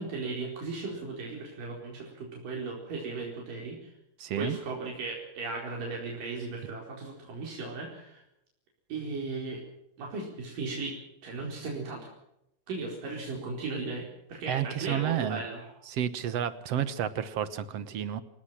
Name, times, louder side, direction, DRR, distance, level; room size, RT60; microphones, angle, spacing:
voice 1, 0.0-3.9 4.4-8.2 8.9-9.6 10.0-10.9 11.2-12.1 12.7-15.7, right 3 dB, 85° right, -1 dB, 6.1 m, -36 dB
voice 2, 4.2-4.6 14.5-15.4 15.9-18.2, right 9 dB, 60° right, 13 dB, 2.0 m, -31 dB
28.0 x 18.5 x 5.9 m, 0.81 s
omnidirectional pair, 3.8 m